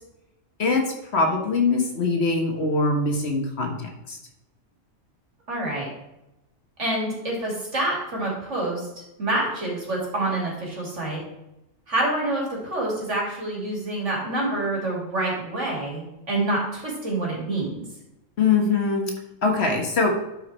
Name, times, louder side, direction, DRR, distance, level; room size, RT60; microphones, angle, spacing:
voice 1, 0.6-4.2 18.4-19.1 19.4-20.2, left 3 dB, 55° left, 2 dB, 1.6 m, -23 dB
voice 2, 5.5-5.9 6.8-8.9 9.2-11.2 11.9-17.8, right 2 dB, 65° right, -3 dB, 3.0 m, -27 dB
11.5 x 4.8 x 4.3 m, 0.91 s
omnidirectional pair, 1.3 m